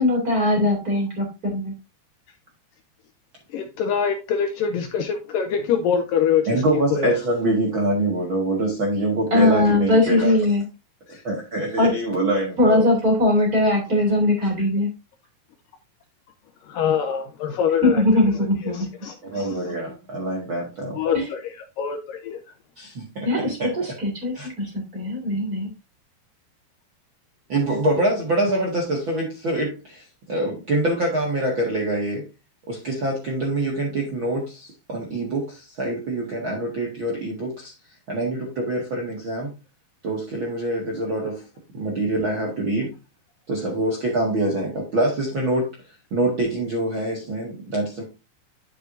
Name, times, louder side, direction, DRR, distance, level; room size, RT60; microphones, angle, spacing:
voice 1, 0.0-1.7 9.3-10.6 11.8-11.9 12.6-14.9 17.8-18.8 21.1-21.2 23.2-25.7, left 1 dB, 25° right, 2.7 m, -20 dB
voice 2, 3.5-6.6 6.9-7.2 11.1-11.2 16.6-18.0 18.6-19.5 21.0-21.4 21.8-22.4, left 7 dB, 75° left, 2.2 m, -24 dB
voice 3, 6.5-10.3 11.2-12.9 19.3-21.0 22.8-23.7 24.3-24.5 27.5-32.2 32.7-37.7 38.1-39.5 40.0-41.4 41.7-42.9 43.5-45.7 46.1-48.0, right 1 dB, 45° right, 1.6 m, -25 dB
10.5 x 6.1 x 2.6 m
omnidirectional pair, 4.5 m